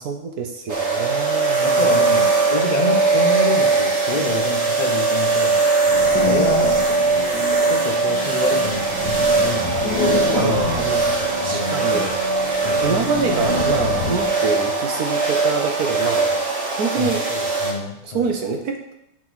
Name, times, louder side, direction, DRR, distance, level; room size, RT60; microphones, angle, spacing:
voice 1, 0.0-2.2 10.3-12.5 12.8-16.4 16.7-17.2 18.0-18.9, right 4 dB, 60° right, 4 dB, 1.0 m, -26 dB
sound 1, 0.7-17.7, right 4 dB, 35° right, 1.4 m, -20 dB
voice 2, 1.6-5.6 5.9-6.8 7.7-10.8 11.4-12.1 12.6-12.8 17.0-18.3, left 3 dB, 85° left, 2 dB, 0.3 m, -28 dB
sound 2, 5.9-14.4, left 5 dB, 55° left, 1.4 m, -28 dB
8.8 x 4.1 x 6.2 m, 0.82 s
omnidirectional pair, 2.3 m